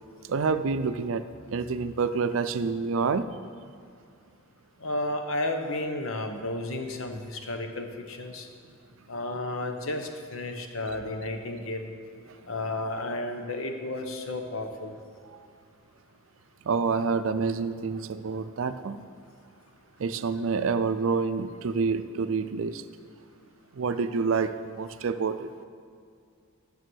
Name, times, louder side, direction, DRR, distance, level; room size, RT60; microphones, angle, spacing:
voice 1, 0.3-1.2 1.5-3.3 15.3-15.4 16.7-19.0 20.0-22.8 23.7-25.5, right 5 dB, 75° right, 12 dB, 0.4 m, -27 dB
voice 2, 4.8-8.5 9.1-11.9 12.5-15.0, left 2 dB, 80° left, 5 dB, 1.0 m, -32 dB
9.4 x 6.9 x 6.3 m, 2.3 s
head